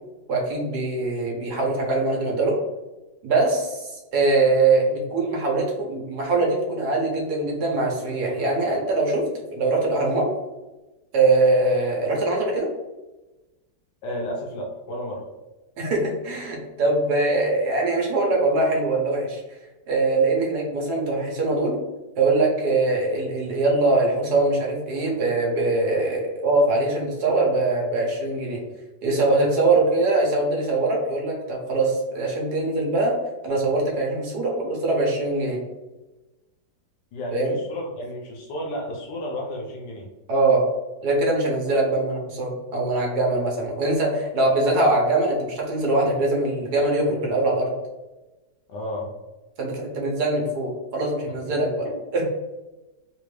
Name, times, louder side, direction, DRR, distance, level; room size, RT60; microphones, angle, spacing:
voice 1, 0.3-2.6 3.2-3.8 4.1-10.3 11.1-12.7 15.8-19.4 19.9-21.8 22.2-28.6 29.0-33.1 33.4-35.6 37.3-37.5 40.3-40.6 41.0-47.7 49.6-51.9 52.1-52.2, right 2 dB, 65° right, -1 dB, 1.3 m, -22 dB
voice 2, 14.0-15.3 37.1-40.1 48.7-49.1 51.4-51.5 51.8-51.9, equal, 80° left, -1 dB, 1.3 m, -32 dB
3.4 x 2.5 x 3.1 m, 1.1 s
omnidirectional pair, 1.9 m